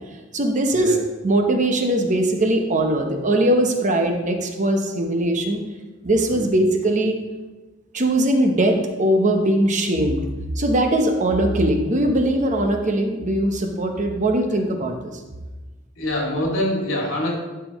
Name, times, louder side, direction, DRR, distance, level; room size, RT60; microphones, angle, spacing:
voice 1, 0.3-0.9 1.2-5.6 6.0-7.2 7.9-10.3 10.6-15.1, right 1 dB, 40° right, 3 dB, 0.9 m, -20 dB
voice 2, 16.0-17.3, left 1 dB, 75° left, -2 dB, 2.6 m, -25 dB
11.5 x 5.9 x 3.1 m, 1.2 s
head